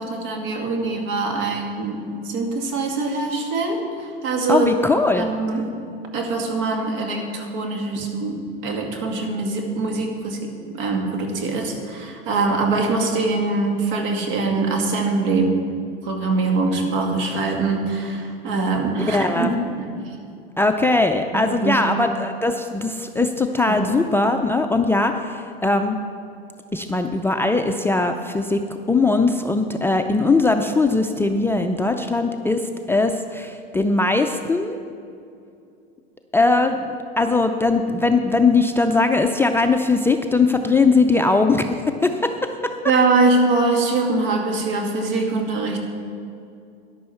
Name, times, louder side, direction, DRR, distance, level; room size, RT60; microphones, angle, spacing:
voice 1, 0.0-4.7 4.9-5.6 6.1-15.6 16.0-19.9 21.3-21.8 23.7-23.9 42.8-45.8, right 3 dB, 60° right, 2 dB, 2.4 m, -23 dB
voice 2, 4.5-5.3 19.1-19.5 20.6-26.0 26.7-28.6 28.9-34.8 36.3-42.7, left 3 dB, 10° left, 5 dB, 0.4 m, -20 dB
13.5 x 10.5 x 4.5 m, 2.5 s
hypercardioid pair, 95°, 30 cm